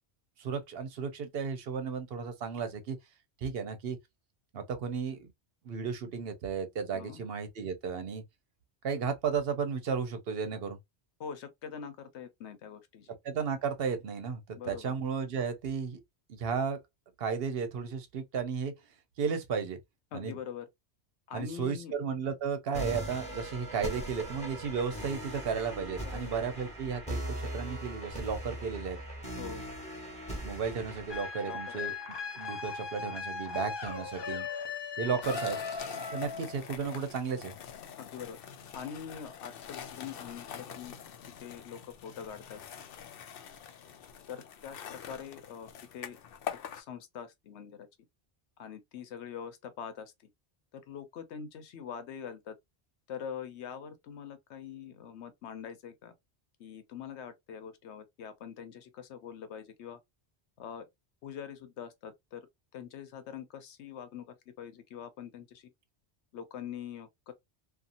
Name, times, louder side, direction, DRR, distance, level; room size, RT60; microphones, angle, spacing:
voice 1, 0.4-3.0 3.4-4.0 4.5-5.3 5.6-8.2 8.8-10.8 13.2-16.0 16.3-16.8 17.2-18.7 19.2-19.8 20.1-20.4 21.3-29.0 30.4-31.9 32.3-34.5 35.0-35.6 36.1-37.5, right 6 dB, 65° right, 0.8 m, -34 dB
voice 2, 11.2-13.2 14.5-14.9 20.1-20.7 21.3-21.9 26.0-26.5 29.4-29.6 31.5-31.9 35.0-35.3 38.0-38.4 38.7-41.0 41.4-42.6 44.3-46.2 46.7-47.9 48.6-50.3 50.9-52.6 53.1-56.1 56.6-60.0 60.6-60.9 61.2-62.5 62.7-65.7 66.3-67.3, left 8 dB, 85° left, 1.0 m, -44 dB
sound 1, 22.7-33.7, right 1 dB, 5° left, 1.0 m, -40 dB
sound 2, 31.1-36.6, left 5 dB, 40° left, 0.4 m, -38 dB
sound 3, 35.2-46.8, left 8 dB, 65° left, 0.7 m, -45 dB
2.7 x 2.4 x 2.5 m
omnidirectional pair, 1.1 m